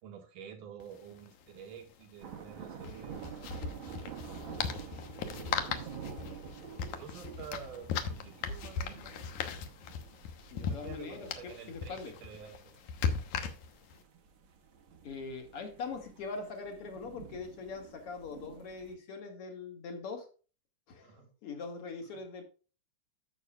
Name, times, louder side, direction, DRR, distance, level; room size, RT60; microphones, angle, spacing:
voice 1, 0.0-5.1 5.5-9.6 10.6-12.8 13.4-13.6 21.0-21.3, right 7 dB, 80° right, 4 dB, 3.3 m, -50 dB
sound 1, 0.8-0.9 1.1-1.3 2.8-14.0, left 7 dB, 70° left, 2.4 m, -38 dB
sound 2, 2.2-18.9, right 6 dB, 55° right, 1.6 m, -49 dB
voice 2, 10.5-12.1 15.0-20.3 20.9-22.4, left 4 dB, 50° left, 5 dB, 2.6 m, -42 dB
13.5 x 7.0 x 2.4 m, 0.35 s
omnidirectional pair, 3.8 m